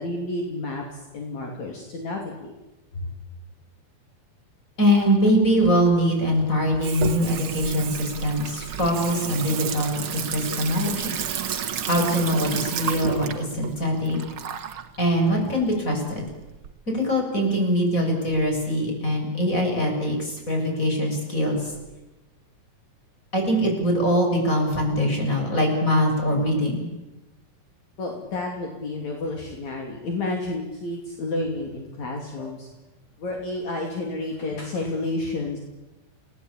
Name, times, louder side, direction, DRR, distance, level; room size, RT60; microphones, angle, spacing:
voice 1, 0.0-2.5 28.0-32.7 33.2-35.6, left 2 dB, 60° left, 1 dB, 4.1 m, -30 dB
voice 2, 4.8-11.1 11.9-14.2 15.0-16.3 16.9-21.7 23.3-26.9, equal, 25° left, 2 dB, 7.1 m, -23 dB
Water tap faucet / Sink (filling or washing), 5.0-16.7, right 8 dB, 50° right, 1.8 m, -32 dB
29.5 x 19.0 x 8.8 m, 1.0 s
omnidirectional pair, 3.8 m